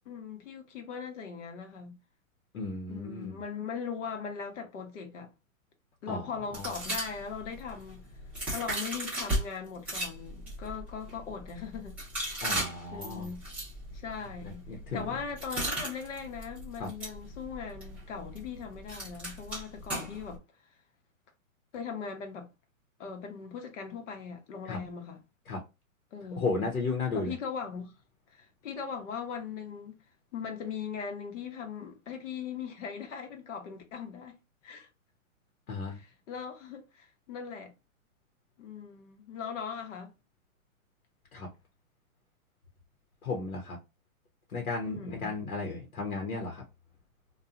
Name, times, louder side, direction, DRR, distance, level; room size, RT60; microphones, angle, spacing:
voice 1, 0.0-2.0 2.9-5.3 6.0-8.1 8.5-12.4 12.9-13.5 13.9-14.7 14.9-20.4 21.7-22.5 23.0-25.2 26.1-26.7 27.1-27.9 28.3-30.0 30.3-34.4 34.6-34.9 35.9-37.7 38.6-40.1 44.9-45.3, left 6 dB, 60° left, 1.0 m, -39 dB
voice 2, 2.5-3.4 6.1-6.3 6.5-6.7 12.4-13.3 14.7-15.1 16.8-16.9 24.7-24.8 25.5-25.6 26.4-27.3 35.7-36.0 41.3-41.5 43.2-43.8 44.5-46.6, left 3 dB, 90° left, 1.0 m, -34 dB
sound 1, 6.5-9.4 9.8-20.4, right 1 dB, 5° right, 0.5 m, -37 dB
2.7 x 2.3 x 2.3 m
hypercardioid pair, 140°, 42 cm